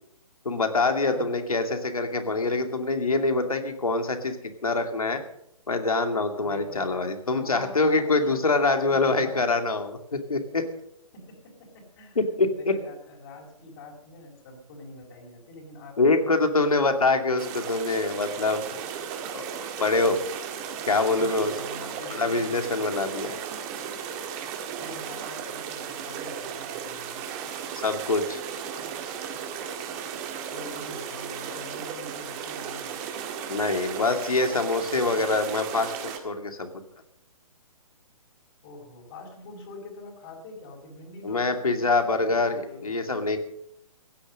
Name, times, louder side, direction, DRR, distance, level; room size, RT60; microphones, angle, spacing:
voice 1, 0.4-4.4 4.6-5.2 5.7-10.6 12.2-12.7 16.0-18.6 19.3-19.4 19.8-20.2 20.9-21.5 22.1-23.4 27.8-28.4 33.5-36.7 41.2-43.4, left 3 dB, 80° left, 6 dB, 2.5 m, -25 dB
voice 2, 1.1-1.4 6.4-9.5 11.1-12.2 12.5-17.7 21.1-22.5 24.8-27.2 30.5-33.0 38.6-43.1, left 2 dB, 40° left, -3 dB, 4.4 m, -44 dB
sound 1, 17.4-36.2, right 7 dB, 25° right, 1.9 m, -35 dB
16.0 x 10.5 x 6.5 m, 0.76 s
figure-of-eight pair, 135°, 18 cm